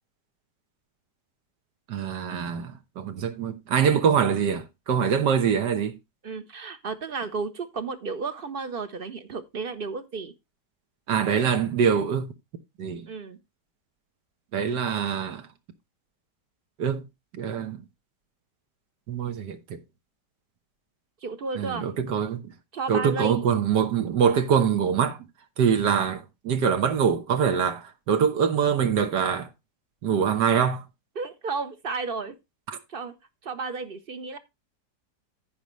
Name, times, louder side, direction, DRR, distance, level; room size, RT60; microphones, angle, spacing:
voice 1, 1.9-6.0 11.1-12.3 12.8-13.1 14.5-15.4 16.8-17.0 17.3-17.8 19.1-19.8 21.6-22.5 22.9-25.2 25.6-29.5 30.0-30.8 32.7-32.8, right 7 dB, 85° right, 1.8 m, -24 dB
voice 2, 6.2-10.3 13.1-13.4 21.2-21.9 22.7-23.4 31.2-32.4 32.9-33.1 33.4-34.4, right 4 dB, 50° right, 0.7 m, -33 dB
15.0 x 5.3 x 3.1 m
omnidirectional pair, 1.8 m